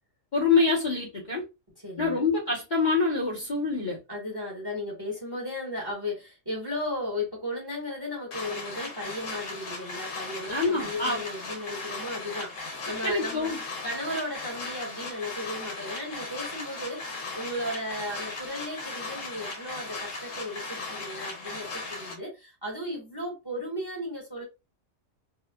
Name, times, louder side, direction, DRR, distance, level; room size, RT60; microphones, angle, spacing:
voice 1, 0.3-1.4 2.0-4.0 10.5-11.2 13.0-13.6, left 4 dB, 40° left, 1.0 m, -25 dB
voice 2, 1.8-2.2 4.1-13.5 13.8-24.4, left 1 dB, 20° right, 1.1 m, -35 dB
sound 1, 8.3-22.2, left 3 dB, 85° left, 1.1 m, -37 dB
2.8 x 2.3 x 2.2 m
omnidirectional pair, 1.3 m